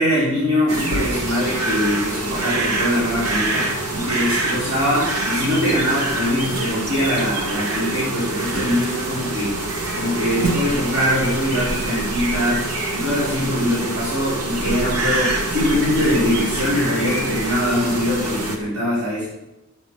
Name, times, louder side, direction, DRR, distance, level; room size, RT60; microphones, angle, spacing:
voice 1, 0.0-19.2, equal, 65° right, -10 dB, 5.0 m, -22 dB
sound 1, 0.7-18.6, right 2 dB, 85° right, 1.8 m, -25 dB
9.6 x 7.4 x 7.6 m, 0.97 s
head